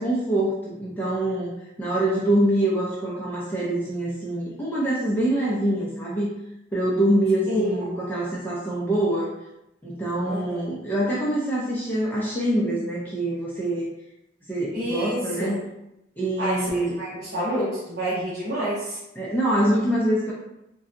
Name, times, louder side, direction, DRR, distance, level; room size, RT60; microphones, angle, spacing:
voice 1, 0.0-1.5 1.8-6.3 6.7-9.3 9.8-13.9 14.5-15.6 16.2-17.0 19.2-20.3, right 1 dB, 10° left, -7 dB, 0.5 m, -24 dB
voice 2, 7.5-7.9 10.2-10.6 14.7-15.5 16.4-19.0, equal, 50° right, -11 dB, 1.0 m, -28 dB
3.8 x 2.3 x 2.5 m, 0.87 s
head